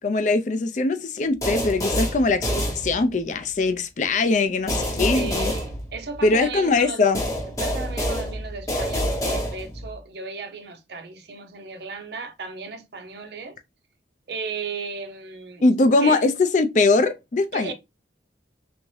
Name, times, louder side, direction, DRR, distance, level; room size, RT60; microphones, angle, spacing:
voice 1, 0.0-5.5 6.2-7.2 15.6-17.7, left 3 dB, 40° left, 0.4 m, -21 dB
sound 1, 1.4-3.3 4.7-6.4 7.1-9.9, equal, 20° left, 0.8 m, -27 dB
voice 2, 5.0-7.2 7.4-13.6 14.3-15.6 16.0-16.2 17.5-17.7, right 4 dB, 60° right, 0.5 m, -35 dB
3.5 x 2.6 x 3.1 m
head